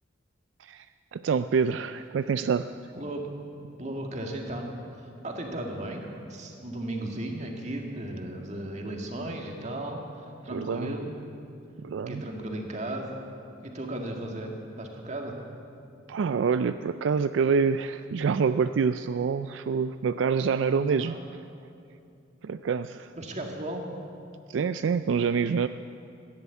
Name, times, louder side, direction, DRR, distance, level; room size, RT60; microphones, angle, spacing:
voice 1, 1.1-2.7 10.5-10.9 11.8-12.2 16.1-21.2 22.4-23.1 24.5-25.7, right 5 dB, 75° right, 11 dB, 0.3 m, -26 dB
voice 2, 3.8-4.7 5.2-10.0 10.4-11.1 12.1-13.3 13.6-14.5 14.8-15.3 20.8-21.2 23.2-23.8, right 1 dB, 35° right, 1 dB, 1.9 m, -35 dB
15.0 x 10.5 x 8.3 m, 2.6 s
head